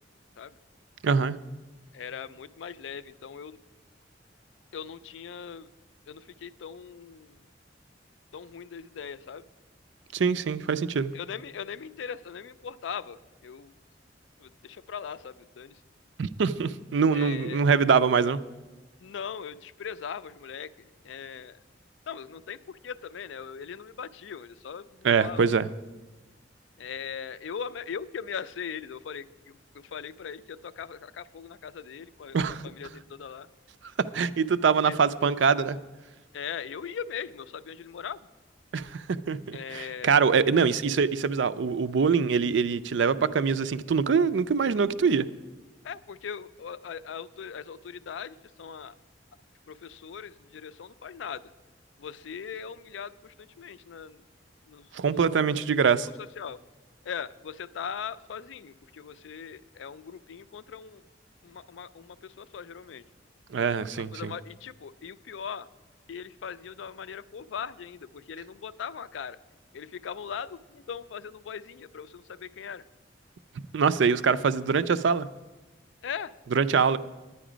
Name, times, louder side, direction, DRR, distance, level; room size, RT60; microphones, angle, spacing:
voice 1, 1.0-1.4 10.1-11.1 16.2-18.4 25.0-25.7 32.3-32.6 34.0-35.8 38.7-45.3 54.9-56.1 63.5-64.3 73.7-75.3 76.5-77.0, right 5 dB, 80° right, 14 dB, 0.4 m, -24 dB
voice 2, 1.9-3.6 4.7-5.7 6.1-7.4 8.3-9.4 11.1-13.7 14.4-15.8 17.1-17.7 19.0-21.6 22.1-25.4 26.8-32.4 32.6-33.5 34.8-35.0 36.3-38.2 39.5-40.2 45.8-48.9 49.7-51.5 52.0-54.2 54.6-54.9 55.5-55.6 56.2-56.6 57.0-61.0 61.4-63.0 64.0-65.7 66.1-69.4 69.7-72.8 76.0-76.3, left 7 dB, 85° left, 15 dB, 0.4 m, -40 dB
10.0 x 9.4 x 5.0 m, 1.2 s
head